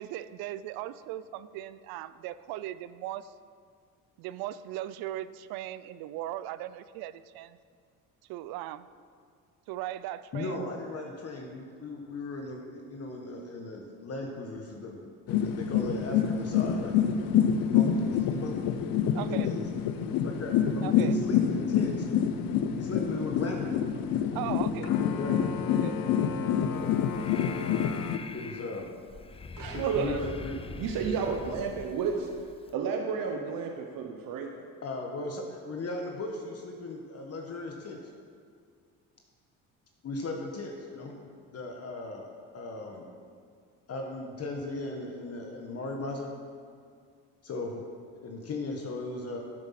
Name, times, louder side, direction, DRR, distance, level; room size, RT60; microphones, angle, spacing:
voice 1, 0.0-3.3 4.2-7.6 8.3-8.9 9.7-10.6 19.1-19.5 20.8-21.1 24.3-25.0 25.8-26.1 27.4-27.7 29.9-30.2, right 13 dB, 90° right, 15 dB, 0.5 m, -38 dB
voice 2, 10.3-15.0 15.3-17.0 17.7-19.6 20.2-22.1 22.7-23.8 25.0-25.5 26.7-26.9 28.3-28.9 29.7-30.6 34.8-38.1 40.0-41.2 41.5-42.3 42.5-43.1 43.9-46.3 47.4-49.4, left 2 dB, 45° left, 1 dB, 1.4 m, -37 dB
sound 1, 15.3-28.2, left 8 dB, 75° left, 0.8 m, -27 dB
Breathing, 26.8-32.7, left 4 dB, 15° left, 0.5 m, -43 dB
voice 3, 29.6-30.3 30.7-32.3 32.7-34.5, right 5 dB, 70° right, 3 dB, 1.1 m, -31 dB
12.0 x 7.2 x 5.8 m, 2.1 s
cardioid pair, 95°, 35 cm